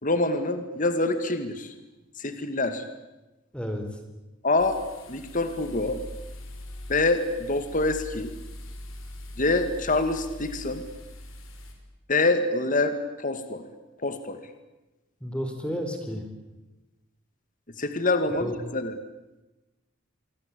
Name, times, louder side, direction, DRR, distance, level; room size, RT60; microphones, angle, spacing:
voice 1, 0.0-1.7 2.2-2.8 4.4-4.8 5.1-6.0 6.9-8.3 9.4-10.8 12.1-13.6 14.0-14.4 17.8-19.0, left 2 dB, 40° left, 8 dB, 2.2 m, -26 dB
voice 2, 3.5-4.0 15.2-16.3 18.4-18.5, equal, 5° left, 5 dB, 4.0 m, -32 dB
sound 1, 4.6-11.7, left 1 dB, 90° left, 5.9 m, -42 dB
27.5 x 23.5 x 8.6 m, 1.0 s
head